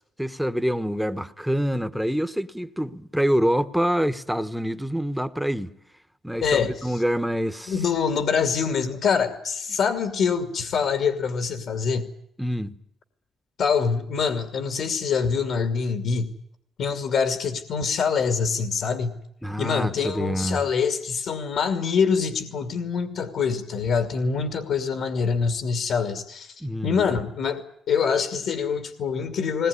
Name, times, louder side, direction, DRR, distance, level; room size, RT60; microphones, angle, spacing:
voice 1, 0.0-5.7 6.2-7.7 12.4-12.8 19.4-20.7 26.6-27.0, equal, ahead, 1.2 m, -26 dB
voice 2, 6.4-6.9 7.7-12.1 13.6-16.3 16.8-19.2 19.6-26.5 26.8-29.7, left 6 dB, 75° left, 2.4 m, -25 dB
20.0 x 20.0 x 9.9 m
cardioid pair, 90°, 0 cm